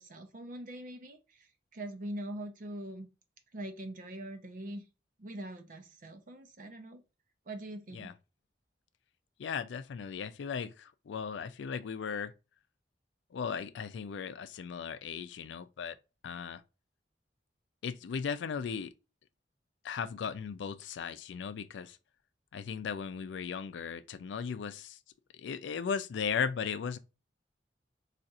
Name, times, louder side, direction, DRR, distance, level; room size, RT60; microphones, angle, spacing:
voice 1, 0.0-3.1 3.5-4.8 5.2-7.0 7.5-8.1, right 1 dB, 45° right, 0.6 m, -43 dB
voice 2, 9.4-12.3 13.3-16.0 16.2-16.6 17.8-18.9 19.8-22.0 22.5-25.0 25.3-27.0, left 6 dB, 85° left, 0.4 m, -37 dB
4.1 x 2.4 x 2.4 m
head